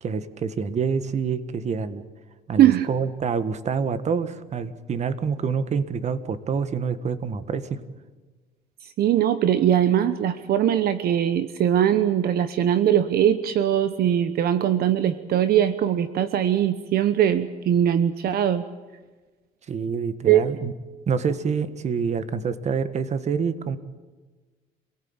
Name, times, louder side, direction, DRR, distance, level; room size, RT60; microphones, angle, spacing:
voice 1, 0.0-2.1 2.5-7.8 19.7-20.7 21.1-23.8, right 6 dB, 40° right, 12 dB, 1.6 m, -27 dB
voice 2, 9.0-18.6 20.3-20.4, right 10 dB, 65° right, 12 dB, 1.1 m, -21 dB
27.5 x 18.0 x 8.9 m, 1.3 s
cardioid pair, 110°, 17 cm